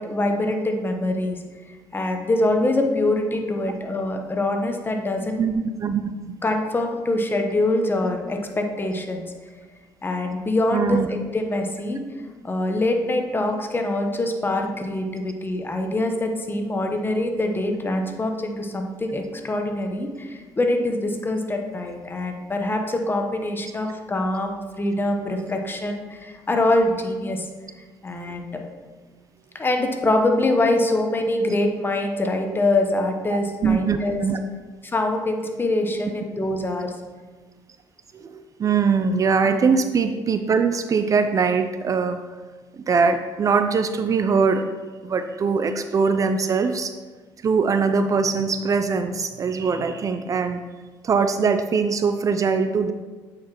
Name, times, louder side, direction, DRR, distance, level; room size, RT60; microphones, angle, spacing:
voice 1, 0.0-1.4 1.7-5.5 6.4-9.2 10.0-12.0 12.4-27.5 28.0-28.6 29.5-34.2 34.8-36.9 39.4-39.6, left 2 dB, 25° left, 4 dB, 1.0 m, -24 dB
voice 2, 5.4-6.0 10.7-11.1 28.3-28.4 33.3-34.4 38.1-42.2 42.7-44.7 45.0-46.9 47.4-50.6 51.0-52.9, right 5 dB, 40° right, 8 dB, 0.4 m, -22 dB
8.1 x 4.8 x 3.0 m, 1.3 s
supercardioid pair, 75°, 9 cm